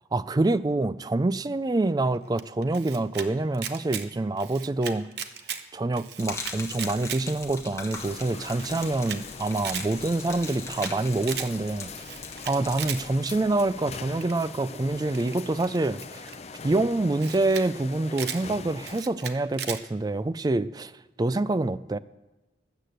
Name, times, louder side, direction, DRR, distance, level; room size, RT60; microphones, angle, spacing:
voice 1, 0.1-5.1 5.7-11.9 12.5-16.3 16.6-20.9 21.2-22.0, right 2 dB, 20° right, 16 dB, 0.3 m, -26 dB
Camera, 2.4-3.3 3.5-4.1 4.4-5.6 5.9-7.2 7.6-7.7 7.9-8.0 8.2-8.3 8.6-9.2 9.5-9.9 10.3-10.9 11.2-11.5 11.9-13.0 14.2-14.5 15.1-16.4 16.9-17.0 17.2-17.7 17.9-18.4 18.8-19.8, right 8 dB, 60° right, 0.9 m, -36 dB
Gurgling / Liquid, 6.2-13.8, left 4 dB, 15° left, 1.3 m, -41 dB
sound 1, 7.9-19.0, left 4 dB, 35° left, 0.6 m, -42 dB
13.0 x 8.2 x 7.7 m, 1.1 s
head